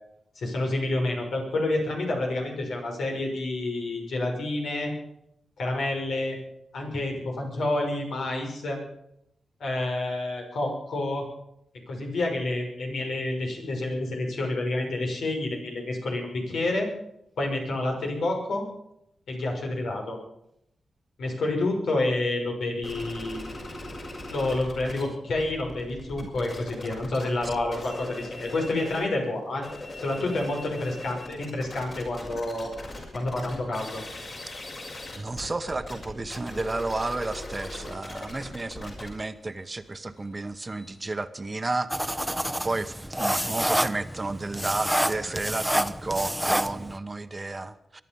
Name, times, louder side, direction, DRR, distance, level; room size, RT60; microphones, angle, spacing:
voice 1, 0.4-4.9 5.6-6.4 6.7-8.8 9.6-11.2 11.9-16.9 17.4-18.7 19.3-20.2 21.2-23.4 24.3-29.6 30.0-32.7 33.1-34.0, left 2 dB, 85° left, 1 dB, 6.1 m, -29 dB
sound 1, 22.8-25.0 25.3-29.1 29.5-41.1, left 2 dB, 50° left, 6.5 m, -40 dB
voice 2, 35.2-42.2 42.6-48.0, right 2 dB, 25° right, 11 dB, 1.0 m, -32 dB
sound 2, 41.9-47.0, equal, 5° right, 0.9 m, -28 dB
22.5 x 11.5 x 5.5 m, 0.77 s
wide cardioid pair, 100°, 0 cm